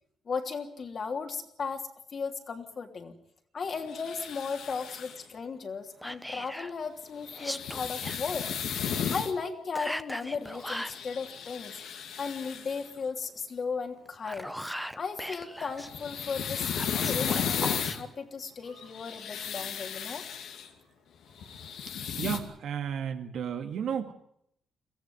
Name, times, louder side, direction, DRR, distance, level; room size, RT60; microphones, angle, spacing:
voice 1, 0.2-3.1 3.5-8.5 9.1-11.8 12.2-14.5 15.0-16.6 17.0-20.2, left 5 dB, 45° left, 4 dB, 3.1 m, -36 dB
sound 1, 3.9-5.2 7.2-9.3 10.5-12.9 15.6-18.0 18.8-20.7 21.3-22.4, left 8 dB, 75° left, 2.5 m, -34 dB
Whispering, 6.0-6.7 7.3-8.2 9.7-11.0 14.0-15.9 16.7-18.0, equal, ahead, 1.0 m, -38 dB
voice 2, 22.2-24.1, right 8 dB, 70° right, 6 dB, 2.3 m, -33 dB
23.0 x 15.0 x 9.4 m, 0.73 s
cardioid pair, 85°, 0 cm